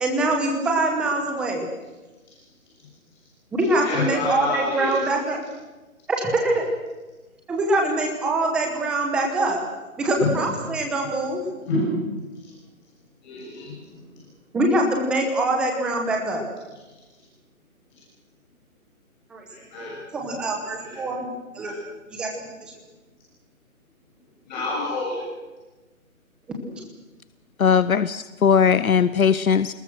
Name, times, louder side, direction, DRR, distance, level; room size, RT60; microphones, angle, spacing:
voice 1, 0.0-1.7 3.5-5.4 6.2-6.6 7.5-9.6 10.0-11.4 14.5-16.4 19.3-19.5 20.1-21.3 21.5-21.7 22.1-22.7, right 2 dB, ahead, 1 dB, 0.9 m, -24 dB
voice 2, 3.6-4.9 10.2-10.4 11.7-11.9 13.2-13.8 19.5-20.0 20.9-21.0 21.6-21.7 24.5-25.2, left 3 dB, 30° left, -4 dB, 6.7 m, -28 dB
voice 3, 27.6-29.7, left 7 dB, 75° left, 14 dB, 1.0 m, -19 dB
28.5 x 20.0 x 6.1 m, 1.2 s
hypercardioid pair, 160°, 43 cm